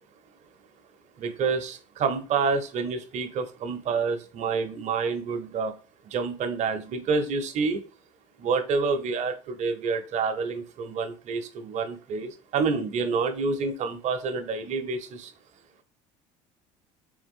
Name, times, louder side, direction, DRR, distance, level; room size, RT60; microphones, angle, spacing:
voice 1, 1.2-5.7 6.0-7.8 8.4-15.3, right 4 dB, 50° right, 8 dB, 0.8 m, -28 dB
3.5 x 3.4 x 3.6 m, 0.36 s
supercardioid pair, 95°, 15 cm